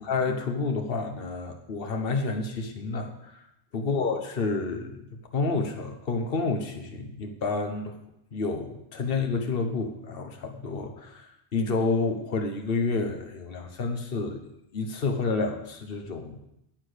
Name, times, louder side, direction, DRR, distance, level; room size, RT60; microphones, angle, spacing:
voice 1, 0.0-3.4 3.7-4.9 5.3-8.0 8.3-14.4 14.7-16.4, left 3 dB, 60° left, 4 dB, 1.3 m, -29 dB
10.5 x 8.4 x 6.5 m, 0.84 s
omnidirectional pair, 1.1 m